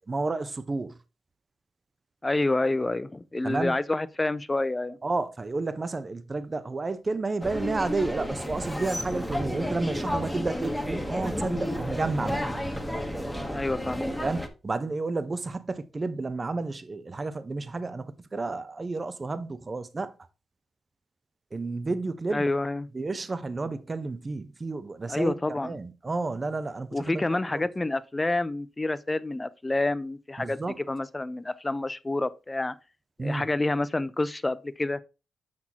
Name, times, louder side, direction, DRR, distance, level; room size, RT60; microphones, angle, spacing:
voice 1, 0.1-1.0 3.4-3.8 5.0-12.4 14.2-20.1 21.5-22.5 22.9-25.4 25.6-27.2 27.5-27.7 30.4-30.8 33.2-33.5, right 3 dB, 35° right, 0.7 m, -31 dB
voice 2, 2.2-5.0 13.5-14.1 22.3-22.9 25.1-25.7 26.9-32.7 33.2-35.0, left 2 dB, 20° left, 0.5 m, -28 dB
sound 1, 7.4-14.5, equal, 5° left, 1.1 m, -31 dB
6.0 x 5.9 x 2.9 m
cardioid pair, 65°, 0 cm